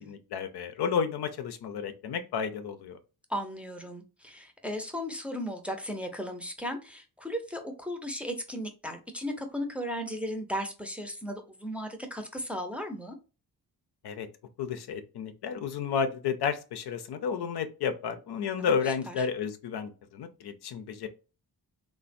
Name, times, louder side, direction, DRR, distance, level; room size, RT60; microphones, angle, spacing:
voice 1, 0.0-3.0 14.0-14.3 14.6-21.1, left 6 dB, 85° left, 0.6 m, -32 dB
voice 2, 3.3-13.2 18.6-19.3, equal, 5° right, 0.5 m, -36 dB
3.2 x 2.2 x 2.5 m
cardioid pair, 90°, 38 cm